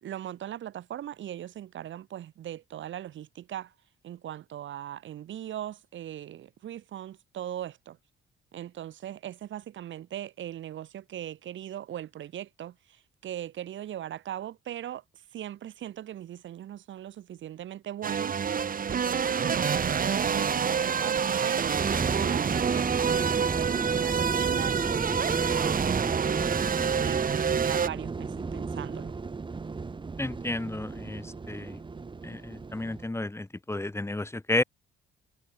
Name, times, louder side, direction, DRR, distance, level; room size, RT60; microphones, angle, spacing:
voice 1, 0.0-3.7 4.0-8.0 8.5-15.0 15.3-21.7 22.1-29.2, right 11 dB, 70° right, 4.2 m, -39 dB
sound 1, 18.0-27.9, right 7 dB, 45° right, 2.7 m, -27 dB
sound 2, 21.7-33.1, right 4 dB, 25° right, 1.2 m, -33 dB
voice 2, 30.2-31.8 32.2-34.6, left 2 dB, 15° left, 6.5 m, -32 dB
cardioid pair, 90°, 20 cm